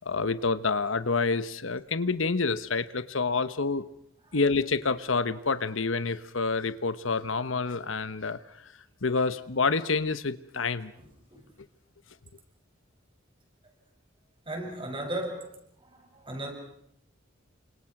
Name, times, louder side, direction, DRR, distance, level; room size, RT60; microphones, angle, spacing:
voice 1, 0.0-3.9 4.3-8.7 9.0-10.9, left 4 dB, 85° left, 14 dB, 1.1 m, -28 dB
voice 2, 11.0-11.5 14.5-15.5 15.8-16.5, right 1 dB, 25° right, 2 dB, 7.1 m, -36 dB
29.0 x 26.0 x 6.0 m, 0.71 s
head